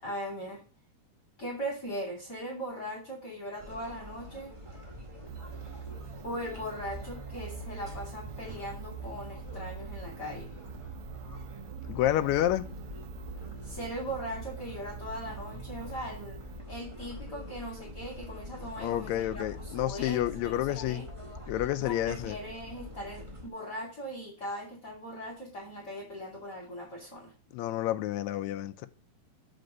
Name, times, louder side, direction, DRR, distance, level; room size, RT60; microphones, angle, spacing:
voice 1, 0.0-0.6 1.4-4.6 6.2-10.5 13.6-16.4 16.7-21.1 21.8-27.3, equal, 35° left, 2.7 m, -39 dB
sound 1, 3.6-23.5, left 1 dB, 10° right, 2.0 m, -44 dB
sound 2, 5.3-16.6, right 13 dB, 70° right, 1.5 m, -45 dB
voice 2, 11.9-12.7 18.8-21.0 21.5-22.4 27.5-28.9, left 13 dB, 85° left, 1.7 m, -29 dB
7.9 x 5.2 x 5.2 m
omnidirectional pair, 3.9 m